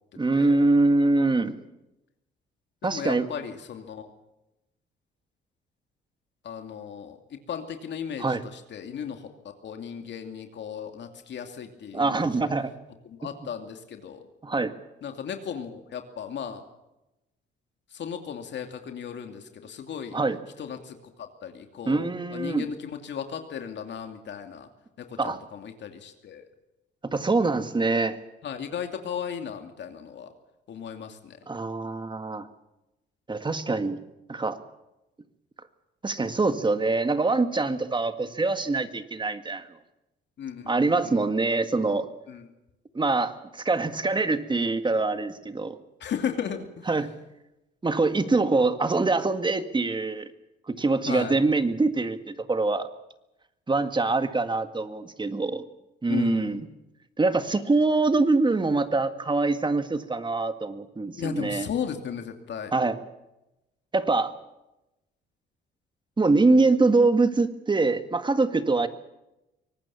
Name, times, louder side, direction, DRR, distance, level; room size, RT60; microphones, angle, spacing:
voice 1, 0.2-1.5 2.8-3.3 8.2-8.4 11.9-12.7 14.4-14.7 20.1-20.4 21.9-22.7 25.2-25.4 27.0-28.2 31.5-32.5 33.3-34.0 34.3-34.6 36.0-39.7 40.7-42.1 42.9-45.8 46.9-47.1 47.8-50.3 50.7-52.9 53.7-55.6 56.0-56.7 57.2-61.7 62.7-63.0 63.9-64.3 66.2-68.9, right 3 dB, 25° right, 10 dB, 1.8 m, -24 dB
voice 2, 2.8-4.1 6.4-9.3 9.6-12.5 13.0-14.2 15.0-16.6 17.9-20.2 20.6-24.7 25.0-26.5 28.4-30.3 30.7-31.4 40.4-41.2 42.3-42.5 46.0-46.9 51.1-51.4 56.1-56.6 61.2-62.7, left 7 dB, 65° left, 5 dB, 2.7 m, -36 dB
24.0 x 19.0 x 7.2 m, 0.94 s
cardioid pair, 90°, 20 cm